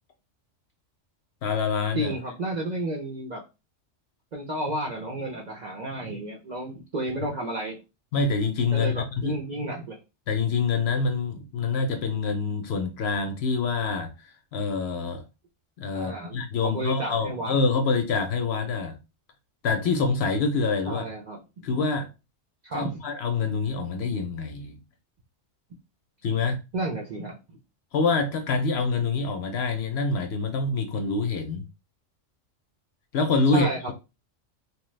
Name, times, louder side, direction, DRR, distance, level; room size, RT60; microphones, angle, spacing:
voice 1, 1.4-2.1 8.1-9.4 10.3-15.2 15.8-19.0 19.6-21.0 21.6-22.1 22.7-24.8 26.2-26.6 27.9-31.6 33.1-33.7, left 4 dB, 65° left, 0.8 m, -26 dB
voice 2, 1.9-3.4 4.3-7.8 8.7-10.0 15.9-17.5 20.9-21.4 22.6-23.0 26.7-27.3 33.5-33.9, right 1 dB, 50° right, 0.5 m, -32 dB
3.0 x 2.2 x 3.1 m
omnidirectional pair, 1.3 m